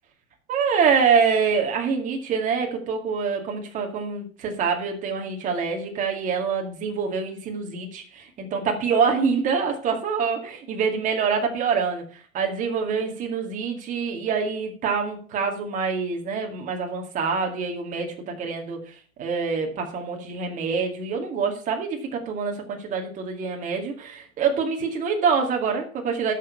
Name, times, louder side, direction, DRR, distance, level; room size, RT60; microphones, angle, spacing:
voice 1, 0.5-26.3, right 5 dB, 20° right, 2 dB, 2.1 m, -25 dB
12.0 x 6.6 x 5.3 m, 0.42 s
hypercardioid pair, 150°, 42 cm